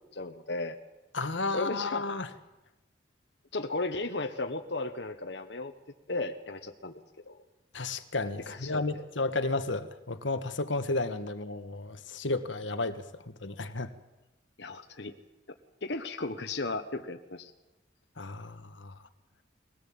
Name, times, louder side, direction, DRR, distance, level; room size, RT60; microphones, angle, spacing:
voice 1, 0.1-0.8 1.5-2.0 3.5-5.7 6.1-6.9 7.3-7.4 8.5-9.0 14.6-15.2 15.8-17.5, left 3 dB, 60° left, 5 dB, 1.3 m, -35 dB
voice 2, 1.1-2.3 7.7-13.9 18.2-19.0, left 2 dB, 80° left, 9 dB, 1.5 m, -33 dB
22.0 x 17.5 x 8.7 m, 1.0 s
head